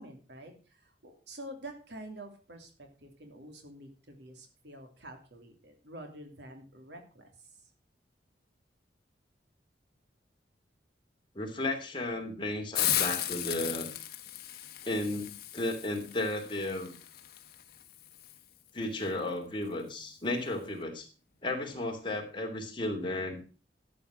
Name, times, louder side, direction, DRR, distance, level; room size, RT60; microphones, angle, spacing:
voice 1, 0.0-7.5, right 1 dB, 75° right, 4 dB, 2.9 m, -48 dB
voice 2, 11.3-13.9 14.8-16.9 18.7-21.1 21.4-23.4, left 1 dB, 30° left, 2 dB, 3.0 m, -34 dB
Hiss, 12.7-18.4, left 12 dB, 60° left, 1.3 m, -35 dB
13.5 x 8.0 x 6.1 m, 0.35 s
head